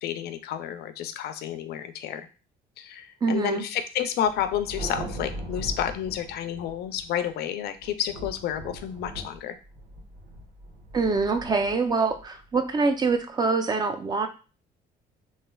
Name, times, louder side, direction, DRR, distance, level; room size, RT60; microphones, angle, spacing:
voice 1, 0.0-2.3 2.8-9.6, left 10 dB, 70° left, 10 dB, 0.4 m, -30 dB
voice 2, 3.2-3.6 10.9-14.3, right 4 dB, 25° right, 7 dB, 0.4 m, -25 dB
Thunder, 4.2-7.3 7.8-13.1, right 1 dB, 80° right, 1.2 m, -40 dB
3.1 x 3.1 x 2.3 m, 0.34 s
cardioid pair, 110°, 17 cm